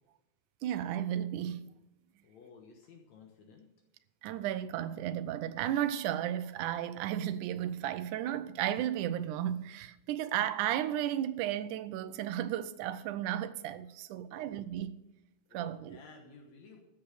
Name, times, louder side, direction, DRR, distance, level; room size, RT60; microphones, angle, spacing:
voice 1, 0.6-1.7 4.2-15.0 15.5-16.0, right 11 dB, 85° right, 2.1 m, -34 dB
voice 2, 2.2-3.7 14.3-14.7 15.5-16.8, left 4 dB, 70° left, 2.4 m, -55 dB
13.5 x 7.1 x 6.5 m
omnidirectional pair, 3.5 m